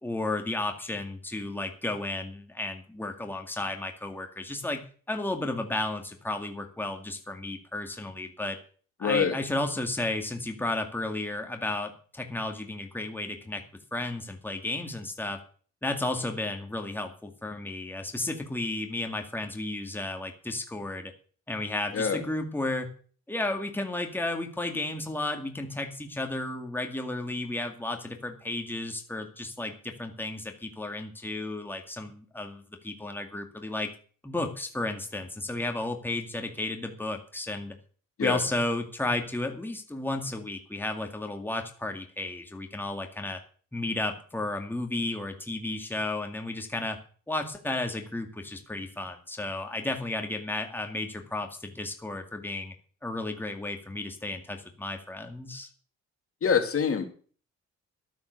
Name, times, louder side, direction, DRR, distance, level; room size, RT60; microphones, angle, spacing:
voice 1, 0.0-8.6 9.0-13.6 13.9-15.4 15.8-21.1 21.5-22.9 23.3-33.9 34.2-37.8 38.2-43.4 43.7-47.0 47.3-52.7 53.0-55.7, left 2 dB, 5° left, 4 dB, 2.2 m, -33 dB
voice 2, 9.0-9.3 21.9-22.2 38.2-38.4 56.4-57.1, left 6 dB, 50° left, 6 dB, 2.3 m, -25 dB
12.5 x 9.2 x 6.6 m, 0.43 s
cardioid pair, 90°, 30 cm